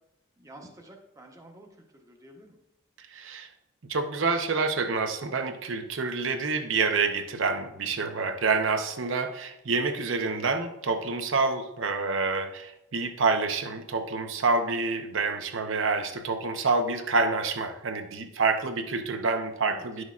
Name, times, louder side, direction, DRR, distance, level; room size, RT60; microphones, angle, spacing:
voice 1, 0.4-2.6 19.7-19.9, right 1 dB, 15° right, 1 dB, 0.9 m, -50 dB
voice 2, 3.1-3.5 3.9-20.0, right 4 dB, 65° right, 7 dB, 0.7 m, -27 dB
10.5 x 6.3 x 2.4 m, 0.83 s
head